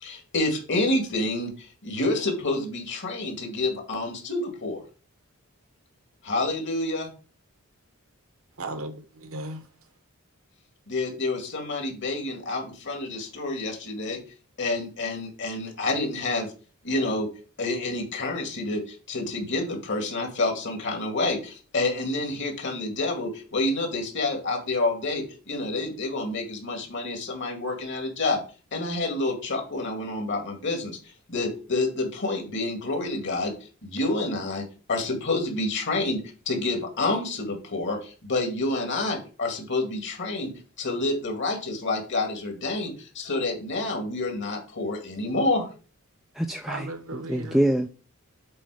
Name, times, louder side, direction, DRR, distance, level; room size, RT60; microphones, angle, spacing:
voice 1, 0.0-4.8 6.2-7.1 10.9-14.2 14.6-16.5 16.8-17.3 17.6-28.4 28.7-31.0 31.3-33.5 33.8-36.2 36.5-40.5 40.8-45.7, left 2 dB, 55° left, 2.1 m, -28 dB
voice 2, 8.6-9.7 46.7-47.6, right 2 dB, 65° right, 1.1 m, -36 dB
voice 3, 46.4-47.9, right 1 dB, ahead, 0.4 m, -26 dB
7.8 x 4.2 x 4.9 m
head